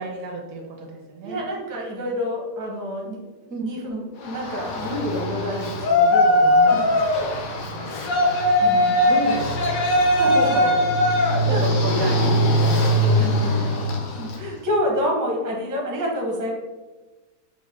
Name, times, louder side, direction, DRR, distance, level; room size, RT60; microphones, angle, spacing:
voice 1, 0.0-1.4 3.5-3.7 6.7-6.9 8.6-8.8 9.1-9.5 10.3-10.8 11.5-12.6 13.2-13.8, right 3 dB, 70° right, 1 dB, 1.0 m, -30 dB
voice 2, 1.2-3.2 3.6-7.0 7.5-8.4 8.6-9.0 10.0-10.8 11.1-11.6 12.0-12.2 13.0-16.5, equal, 25° right, -2 dB, 0.4 m, -29 dB
Yell, 4.2-14.4, left 1 dB, 65° left, 1.1 m, -20 dB
5.1 x 2.1 x 3.5 m, 1.2 s
omnidirectional pair, 1.7 m